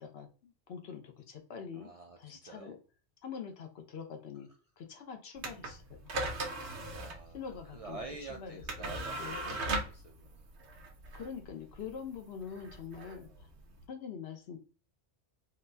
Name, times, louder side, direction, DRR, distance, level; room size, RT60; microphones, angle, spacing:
voice 1, 0.0-1.9 2.2-2.8 3.2-4.5 4.8-6.1 7.3-9.6 11.1-13.5 13.9-14.6, left 7 dB, 70° left, 5 dB, 0.9 m, -45 dB
voice 2, 1.8-2.7 6.9-7.4 7.7-10.4, right 3 dB, 60° right, 2 dB, 0.3 m, -47 dB
sound 1, 5.4-13.9, right 2 dB, 90° right, 1.0 m, -39 dB
4.1 x 2.1 x 2.6 m, 0.34 s
omnidirectional pair, 1.1 m